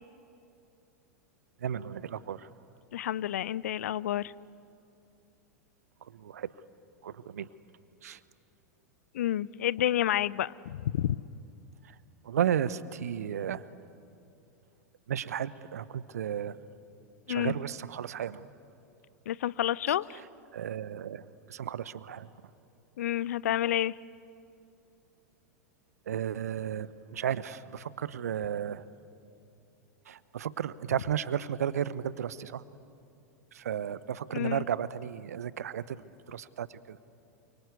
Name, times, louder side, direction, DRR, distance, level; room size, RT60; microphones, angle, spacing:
voice 1, 1.6-2.5 6.0-6.5 7.0-7.5 8.0-8.2 11.8-11.9 12.2-13.7 15.1-16.6 17.3-18.5 20.5-22.3 26.1-28.8 30.1-32.6 33.5-37.0, right 9 dB, 70° right, 17 dB, 0.9 m, -34 dB
voice 2, 2.9-4.3 9.1-11.2 17.3-17.5 19.3-20.2 23.0-24.0 34.3-34.6, left 12 dB, 65° left, 21 dB, 0.6 m, -29 dB
28.5 x 24.5 x 8.3 m, 2.7 s
figure-of-eight pair, 95°, 9 cm